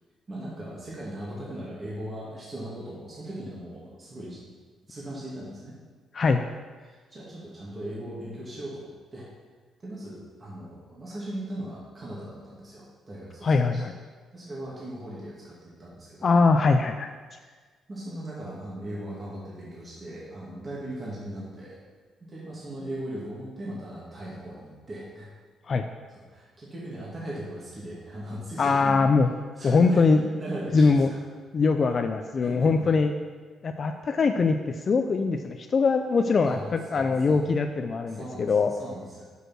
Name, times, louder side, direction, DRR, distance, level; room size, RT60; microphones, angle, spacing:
voice 1, 0.3-4.4 4.9-5.8 6.8-9.3 9.8-13.9 14.3-16.3 17.4-17.5 17.9-21.8 22.3-25.3 26.3-28.9 29.6-30.1 30.3-31.2 31.8-31.9 32.4-32.9 36.4-37.4 38.1-39.2, right 1 dB, 30° right, -6 dB, 2.1 m, -38 dB
voice 2, 6.1-6.5 13.4-13.9 16.2-17.1 25.7-25.9 28.6-29.3 29.6-30.3 30.7-31.1 31.5-33.1 33.6-38.7, left 4 dB, 45° left, 7 dB, 0.4 m, -22 dB
6.5 x 5.1 x 6.2 m, 1.4 s
cardioid pair, 90°, 0 cm